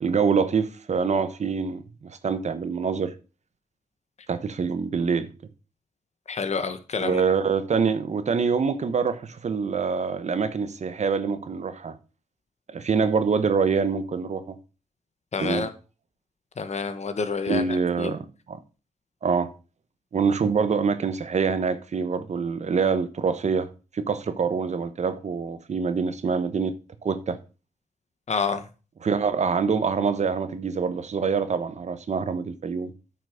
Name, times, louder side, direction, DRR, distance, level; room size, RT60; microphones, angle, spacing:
voice 1, 0.0-3.1 4.3-5.3 7.0-12.0 12.7-14.5 15.4-15.7 17.5-18.6 19.2-19.5 20.1-23.7 23.9-26.7 27.0-27.4 29.0-32.9, right 5 dB, 60° right, 1.1 m, -25 dB
voice 2, 6.3-7.2 15.3-15.7 16.6-18.1 28.3-28.6, left 5 dB, 55° left, 1.3 m, -28 dB
9.5 x 5.9 x 5.0 m
cardioid pair, 80°, 13 cm